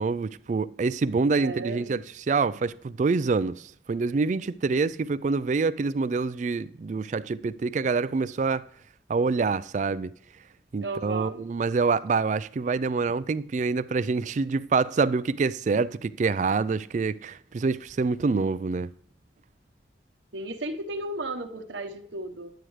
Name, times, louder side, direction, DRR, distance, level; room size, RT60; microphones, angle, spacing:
voice 1, 0.0-3.6 3.9-8.6 9.1-10.1 10.7-18.9, right 4 dB, 40° right, 0.3 m, -26 dB
voice 2, 1.4-2.0 10.8-11.4 20.3-22.5, right 2 dB, 80° right, 1.1 m, -34 dB
10.0 x 9.2 x 3.2 m
head